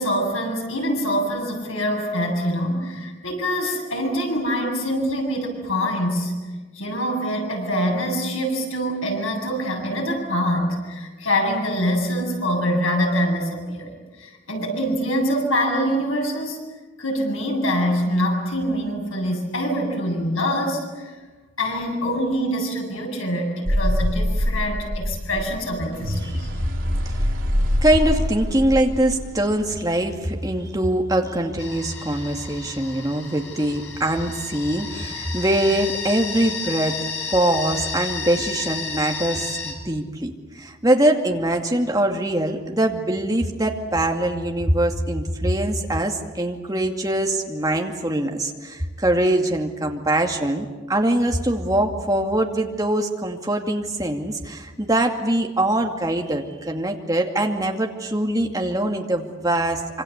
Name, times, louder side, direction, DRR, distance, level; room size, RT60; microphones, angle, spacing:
voice 1, 0.0-6.4 6.7-16.6 17.0-21.1 21.6-26.5, equal, 90° left, 1 dB, 8.0 m, -24 dB
sound 1, 23.6-29.7, equal, 75° right, 2.9 m, -24 dB
voice 2, 27.7-37.0 37.3-60.0, right 1 dB, 20° right, 2 dB, 2.4 m, -23 dB
sound 2, 31.6-39.7, left 5 dB, 65° left, 5.4 m, -32 dB
26.0 x 26.0 x 8.2 m, 1.3 s
head